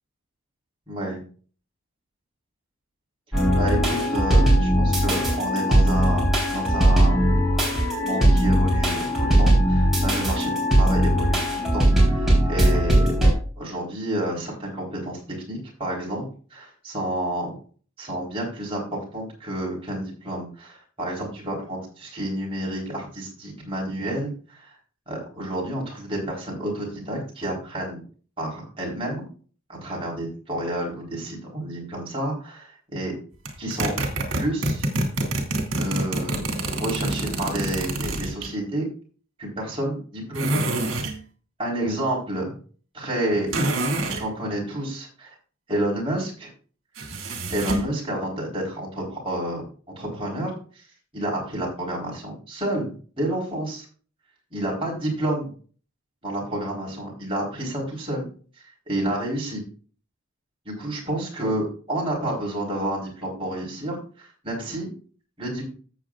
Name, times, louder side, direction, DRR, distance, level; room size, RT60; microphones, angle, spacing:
voice 1, 0.9-1.2 3.3-7.2 8.0-13.1 13.6-15.2 15.5-16.2 16.5-17.5 18.0-24.8 25.1-28.0 28.4-29.3 29.7-33.1 33.6-34.0 34.3-34.9 35.7-36.4 36.7-38.9 39.4-40.9 41.6-42.5 42.9-43.5 44.2-45.3 45.7-46.5 47.5-49.6 50.0-50.8 51.1-53.9 54.5-55.5 56.2-58.3 58.9-59.6 60.7-64.9 65.4-65.6, right 1 dB, 25° right, -3 dB, 4.0 m, -30 dB
sound 1, 3.3-13.3, right 1 dB, ahead, 3.8 m, -19 dB
sound 2, 33.5-38.5 40.4-41.2 43.5-44.3 47.0-47.9, right 1 dB, 65° right, 2.6 m, -26 dB
13.5 x 8.0 x 2.4 m, 0.41 s
head